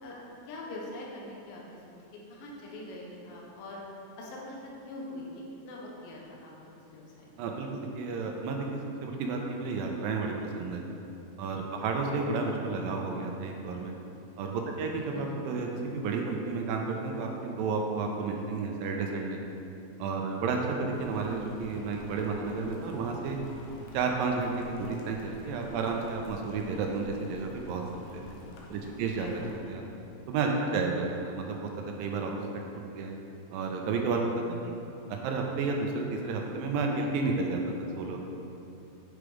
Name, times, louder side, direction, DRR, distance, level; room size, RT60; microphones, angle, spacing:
voice 1, 0.5-1.8 2.3-3.8 4.2-7.4 12.0-12.3 15.1-15.4 20.6-20.7 29.2-29.8 31.0-31.1, left 1 dB, 70° left, -3 dB, 2.7 m, -43 dB
voice 2, 7.4-10.8 11.4-13.9 14.4-19.4 20.0-23.4 23.9-27.8 28.1-28.2 28.7-29.3 29.7-29.8 30.3-32.3 32.9-33.1 33.5-34.3 34.6-34.7 35.1-38.2, right 4 dB, 80° right, 1 dB, 2.2 m, -31 dB
sound 1, 20.9-29.6, left 1 dB, 85° left, 2.9 m, -49 dB
7.9 x 5.0 x 4.9 m, 2.9 s
omnidirectional pair, 4.4 m